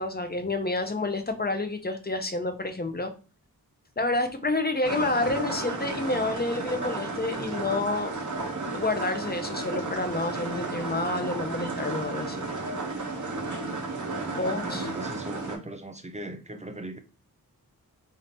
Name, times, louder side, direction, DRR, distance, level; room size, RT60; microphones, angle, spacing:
voice 1, 0.0-3.1 4.0-8.1 8.7-12.5 14.3-14.9, left 2 dB, 25° left, 0.8 m, -29 dB
sound 1, 4.8-15.6, right 3 dB, 50° right, 1.3 m, -33 dB
voice 2, 14.3-17.0, right 1 dB, 20° right, 0.7 m, -39 dB
3.5 x 2.7 x 4.1 m
wide cardioid pair, 50°, 37 cm